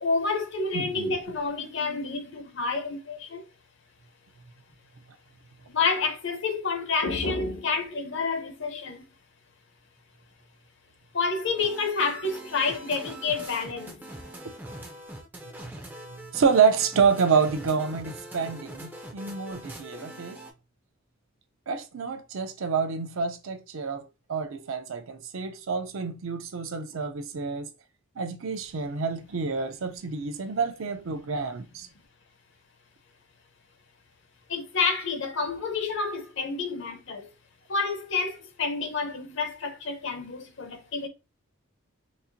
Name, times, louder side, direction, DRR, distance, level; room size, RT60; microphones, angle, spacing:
voice 1, 0.0-3.4 5.7-9.0 11.1-13.9 34.5-37.2 37.7-41.1, left 4 dB, 60° left, 0.7 m, -29 dB
voice 2, 0.7-1.2 16.3-20.4 21.7-24.0 24.3-27.7 28.2-31.9, right 5 dB, 70° right, 0.5 m, -27 dB
sound 1, 11.6-20.5, right 1 dB, 10° right, 0.4 m, -43 dB
4.1 x 2.4 x 2.6 m
head